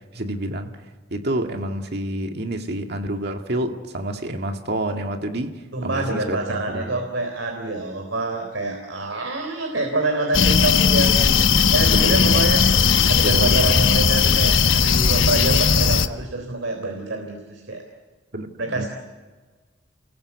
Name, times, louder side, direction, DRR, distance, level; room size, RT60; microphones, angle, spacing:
voice 1, 0.1-0.7 1.1-7.0 11.9-12.4 13.2-13.8 18.3-18.9, right 1 dB, 55° right, 2.1 m, -28 dB
voice 2, 5.7-12.6 13.0-17.8 18.6-18.9, right 2 dB, 80° right, 3.7 m, -26 dB
sound 1, 10.3-16.1, left 6 dB, 85° left, 1.2 m, -17 dB
29.5 x 21.5 x 8.3 m
head